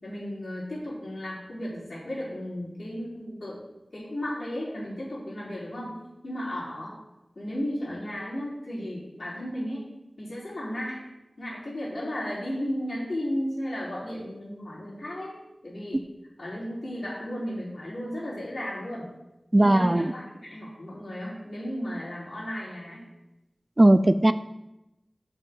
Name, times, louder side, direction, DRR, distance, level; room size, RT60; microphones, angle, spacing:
voice 1, 0.0-3.6 3.9-7.0 7.4-9.9 10.2-11.0 11.4-16.1 16.4-19.1 19.6-23.0, equal, 70° left, -6 dB, 4.0 m, -34 dB
voice 2, 19.5-20.1 23.8-24.3, right 1 dB, 30° right, 12 dB, 0.4 m, -18 dB
6.9 x 6.1 x 7.4 m, 0.93 s
wide cardioid pair, 65°, 0 cm